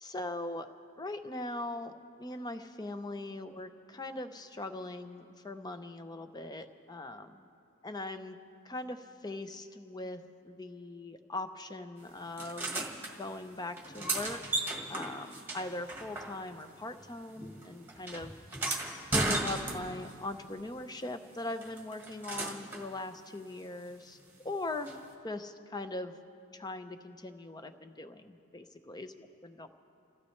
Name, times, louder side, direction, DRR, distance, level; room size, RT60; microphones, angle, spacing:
voice 1, 0.0-0.7 1.0-1.9 2.2-7.5 7.8-8.4 8.6-18.3 19.1-24.2 24.4-25.0 25.2-26.1 26.5-29.7, left 2 dB, 20° left, 8 dB, 0.6 m, -40 dB
sound 1, 12.4-13.1 13.7-16.7 17.0-20.1 21.6-22.9 24.9-25.0, right 2 dB, 10° right, 1.5 m, -35 dB
28.0 x 16.0 x 3.2 m, 2.5 s
head